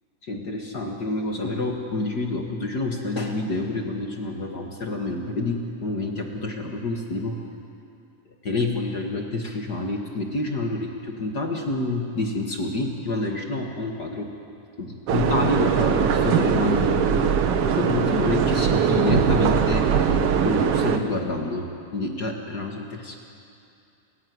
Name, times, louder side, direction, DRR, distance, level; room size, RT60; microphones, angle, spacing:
voice 1, 0.2-7.4 8.2-14.3 14.8-17.3 17.8-19.9 20.4-23.2, left 2 dB, 45° left, 2 dB, 1.3 m, -28 dB
sound 1, 15.1-21.0, right 7 dB, 70° right, 1.4 m, -21 dB
29.5 x 15.5 x 9.5 m, 2.5 s
omnidirectional pair, 4.2 m